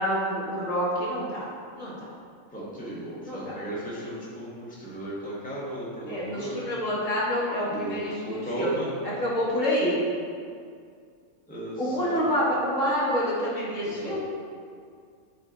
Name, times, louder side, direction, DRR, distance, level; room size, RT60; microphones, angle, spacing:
voice 1, 0.0-1.5 1.8-2.0 3.3-3.5 6.1-10.0 11.8-14.2, equal, 60° left, -7 dB, 1.9 m, -27 dB
voice 2, 2.5-6.7 7.7-9.0 11.5-12.2 13.8-14.2, right 1 dB, 5° left, -8 dB, 1.4 m, -35 dB
10.5 x 3.5 x 4.0 m, 2.2 s
omnidirectional pair, 1.5 m